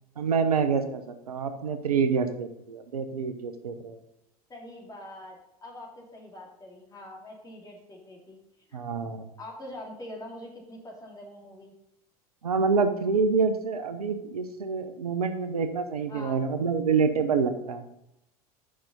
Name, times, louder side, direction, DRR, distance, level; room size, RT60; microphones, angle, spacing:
voice 1, 0.2-1.0 1.3-4.0 8.7-9.3 12.4-17.9, right 5 dB, 80° right, 9 dB, 0.8 m, -27 dB
voice 2, 4.5-8.4 8.7-8.8 9.4-11.7 16.1-16.4, left 1 dB, 20° left, -1 dB, 2.8 m, -44 dB
6.7 x 5.9 x 5.3 m, 0.83 s
figure-of-eight pair, 80°, 19 cm